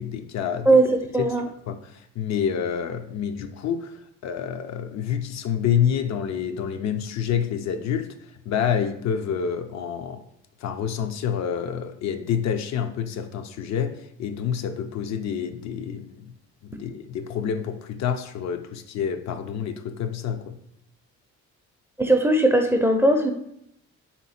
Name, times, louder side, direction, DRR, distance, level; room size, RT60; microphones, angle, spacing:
voice 1, 0.0-0.7 1.2-1.3 1.7-8.1 8.5-10.2 10.6-16.3 16.6-20.6, left 8 dB, 65° left, 7 dB, 0.5 m, -28 dB
voice 2, 0.7-1.5 22.0-23.3, right 1 dB, 10° right, 4 dB, 0.4 m, -19 dB
3.3 x 2.9 x 4.2 m, 0.75 s
cardioid pair, 90°, 30 cm